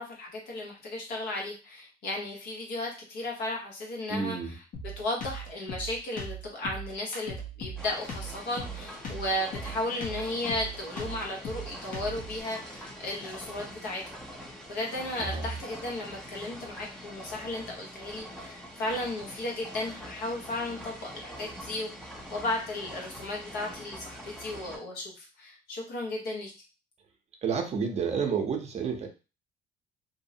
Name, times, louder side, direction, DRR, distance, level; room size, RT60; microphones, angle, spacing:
voice 1, 0.0-4.6 5.0-14.0 14.7-26.5, left 1 dB, 75° left, -1 dB, 1.0 m, -35 dB
voice 2, 4.1-4.5 15.2-15.5 27.4-29.1, right 6 dB, 40° right, 4 dB, 0.6 m, -30 dB
Drum kit, 4.7-12.4, right 1 dB, 55° left, 0.8 m, -39 dB
sound 1, 7.8-24.8, equal, 5° left, 0.5 m, -44 dB
2.7 x 2.0 x 2.7 m, 0.31 s
cardioid pair, 110°, 17 cm